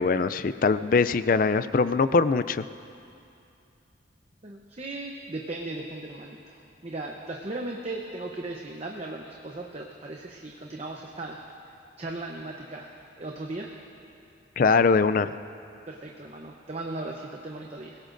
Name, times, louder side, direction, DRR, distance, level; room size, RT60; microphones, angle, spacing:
voice 1, 0.0-2.6 14.6-15.3, left 4 dB, 45° left, 14 dB, 0.4 m, -22 dB
voice 2, 4.4-6.6 6.8-11.4 12.0-12.9 13.2-13.7 15.9-18.0, right 2 dB, 35° right, 0 dB, 0.8 m, -37 dB
26.5 x 17.0 x 2.6 m, 2.6 s
head